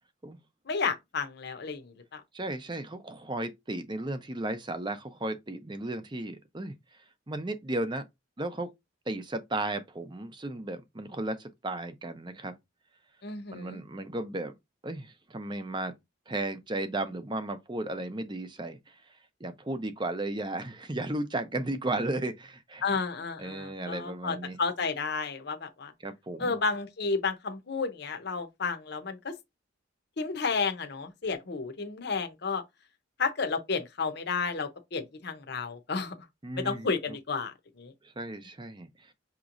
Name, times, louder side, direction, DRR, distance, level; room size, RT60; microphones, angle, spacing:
voice 1, 0.7-2.2 13.2-13.8 22.8-25.9 26.4-29.3 30.2-32.6 33.2-36.1 36.5-37.9, left 4 dB, 55° left, 0.7 m, -32 dB
voice 2, 2.3-6.7 7.3-8.1 8.4-8.7 9.1-12.5 13.5-14.5 14.8-15.9 16.3-18.8 19.4-22.8 23.4-24.6 26.0-26.6 36.4-37.2 38.2-39.1, right 2 dB, 25° right, 0.6 m, -34 dB
6.0 x 2.9 x 2.5 m
head